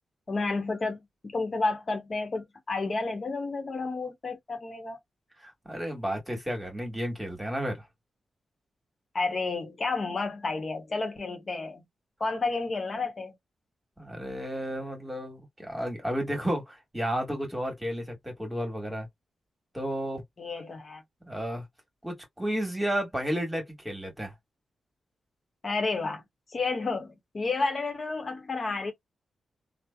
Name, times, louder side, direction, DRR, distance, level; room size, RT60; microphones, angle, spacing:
voice 1, 0.3-5.0 9.1-11.8 12.2-13.3 20.4-21.0 25.6-26.2 26.5-28.9, left 3 dB, 50° left, 0.9 m, -31 dB
voice 2, 5.4-7.8 14.0-19.1 19.7-20.2 21.2-21.6 22.0-24.3, equal, 10° right, 1.5 m, -32 dB
3.2 x 2.0 x 2.2 m
cardioid pair, 60°, 0 cm